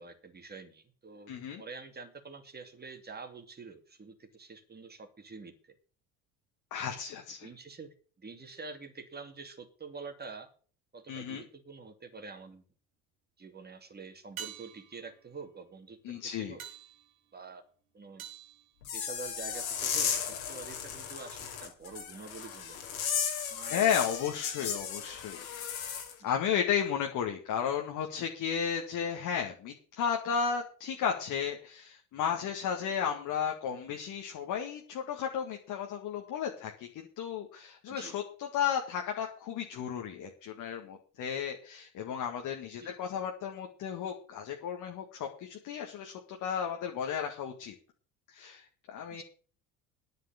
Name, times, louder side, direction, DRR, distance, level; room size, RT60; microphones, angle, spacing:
voice 1, 0.0-5.7 7.4-10.5 10.9-12.6 13.4-16.6 17.3-17.6 17.9-18.2 18.9-22.8 23.3-24.0 24.6-25.1 26.2-26.4 37.9-38.1 42.8-42.9 49.1-49.2, right 4 dB, 20° right, 6 dB, 2.6 m, -47 dB
voice 2, 1.3-1.6 6.7-7.5 11.1-11.4 16.0-16.6 23.6-25.4 26.2-47.7 48.3-49.2, left 8 dB, 45° left, 2 dB, 1.9 m, -34 dB
sound 1, 12.0-12.6 14.4-19.5 24.0-24.1, right 9 dB, 70° right, 2.0 m, -49 dB
sound 2, 18.8-26.1, left 8 dB, 70° left, 2.6 m, -35 dB
10.5 x 8.1 x 7.1 m, 0.42 s
figure-of-eight pair, 60°, 42 cm